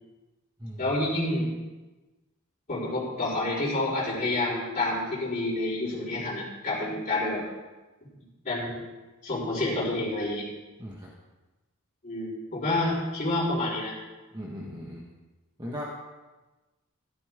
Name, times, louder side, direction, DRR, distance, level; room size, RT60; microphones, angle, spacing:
voice 1, 0.8-1.5 2.7-7.4 8.4-8.9 9.2-10.5 12.0-13.9, left 2 dB, 35° left, -10 dB, 4.2 m, -28 dB
voice 2, 10.8-11.1 14.3-15.1 15.6-15.8, equal, 20° right, -3 dB, 1.3 m, -38 dB
14.0 x 12.0 x 3.6 m, 1.2 s
head